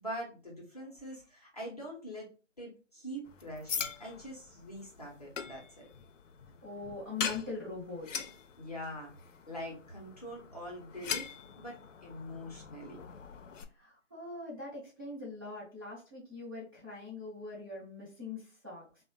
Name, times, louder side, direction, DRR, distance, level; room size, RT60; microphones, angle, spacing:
voice 1, 0.0-2.3 2.6-5.8 8.6-9.1 9.5-11.3 11.6-13.0, equal, 30° left, -2 dB, 0.6 m, -43 dB
sound 1, 3.3-13.6, left 6 dB, 75° left, 0.5 m, -42 dB
voice 2, 6.6-8.1 13.7-18.9, left 3 dB, 20° right, -9 dB, 0.6 m, -42 dB
2.8 x 2.0 x 2.7 m, 0.34 s
figure-of-eight pair, 160°, 38 cm